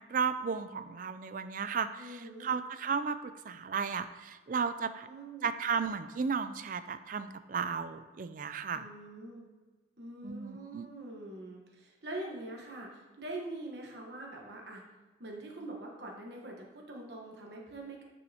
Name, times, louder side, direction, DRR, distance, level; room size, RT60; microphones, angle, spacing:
voice 1, 0.1-3.2 3.4-5.1 5.4-8.9 10.2-10.9, right 6 dB, 45° right, 12 dB, 0.3 m, -34 dB
voice 2, 2.0-2.5 5.0-5.5 8.7-9.5 10.0-14.8 15.2-18.0, right 2 dB, 60° right, -1 dB, 1.1 m, -44 dB
9.2 x 5.5 x 2.8 m, 1.2 s
head